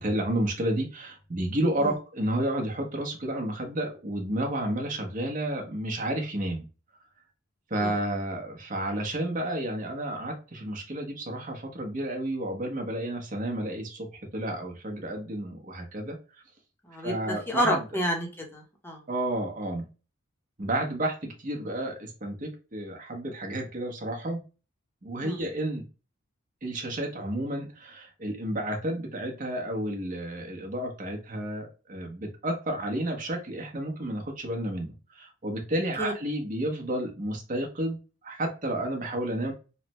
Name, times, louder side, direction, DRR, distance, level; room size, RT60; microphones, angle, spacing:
voice 1, 0.0-6.6 7.7-14.1 14.3-16.2 17.0-17.9 19.1-19.8 20.6-24.4 25.0-25.8 26.6-38.0 38.2-39.5, right 1 dB, 40° right, 1 dB, 0.8 m, -31 dB
voice 2, 16.9-19.0 25.2-25.4 36.0-36.1, equal, 10° left, 1 dB, 0.7 m, -29 dB
3.2 x 2.1 x 2.9 m, 0.32 s
head